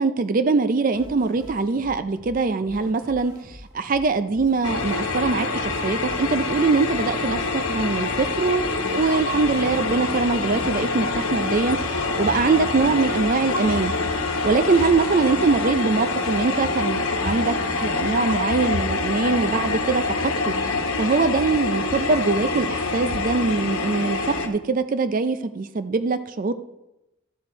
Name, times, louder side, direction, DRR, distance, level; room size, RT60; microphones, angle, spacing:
voice 1, 0.0-13.9 14.4-20.5 21.0-26.5, right 4 dB, 40° right, 11 dB, 0.4 m, -23 dB
sound 1, 0.9-15.1, left 1 dB, 20° right, 1.2 m, -45 dB
sound 2, 4.6-24.5, left 3 dB, 80° left, 1.2 m, -26 dB
12.0 x 7.0 x 4.4 m, 0.92 s
head